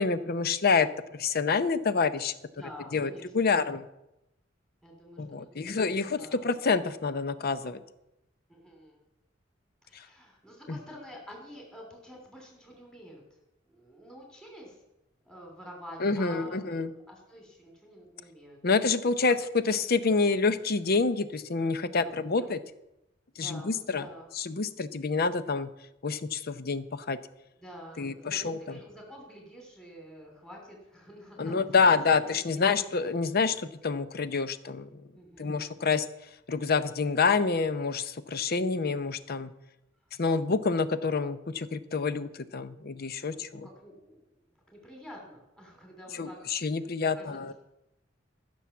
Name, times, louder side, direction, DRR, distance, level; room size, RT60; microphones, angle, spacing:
voice 1, 0.0-2.3 2.9-3.9 5.2-7.8 9.9-10.0 10.7-10.8 16.0-16.9 18.6-22.6 23.4-24.1 24.4-25.7 26.0-27.2 28.0-28.8 31.4-35.0 35.4-36.1 36.5-39.5 40.2-43.7 46.2-47.5, left 4 dB, 50° left, 13 dB, 0.7 m, -27 dB
voice 2, 2.6-3.6 4.8-6.5 8.5-9.1 9.8-13.2 13.6-14.8 15.2-18.6 21.9-22.6 23.3-24.3 27.6-32.3 32.6-32.9 35.1-35.7 43.2-44.2 44.7-46.5 47.1-47.5, equal, 5° left, -1 dB, 2.9 m, -48 dB
14.5 x 6.2 x 7.1 m, 0.90 s
head